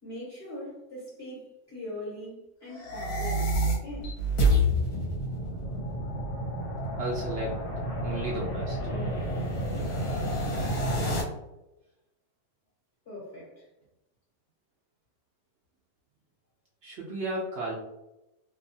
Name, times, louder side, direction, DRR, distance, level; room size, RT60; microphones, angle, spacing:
voice 1, 0.0-4.2 13.0-13.7, left 1 dB, 40° left, -8 dB, 1.2 m, -41 dB
sound 1, 2.7-11.2, equal, 70° left, 1.2 m, -29 dB
voice 2, 7.0-7.7 8.0-9.3 16.8-17.7, right 1 dB, 85° right, -3 dB, 0.6 m, -34 dB
2.7 x 2.2 x 2.6 m, 0.93 s
omnidirectional pair, 1.8 m